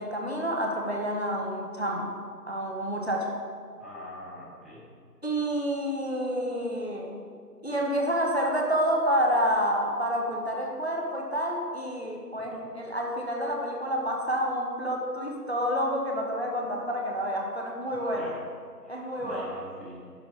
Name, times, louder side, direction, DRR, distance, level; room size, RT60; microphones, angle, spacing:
voice 1, 0.0-2.1 2.5-3.4 5.2-7.2 7.6-18.3 18.9-19.5, equal, 40° left, 0 dB, 0.9 m, -29 dB
voice 2, 3.8-4.8 12.4-12.6 18.1-18.3 18.8-20.0, equal, ahead, -20 dB, 1.5 m, -43 dB
10.5 x 5.8 x 4.1 m, 2.1 s
figure-of-eight pair, 180°, 49 cm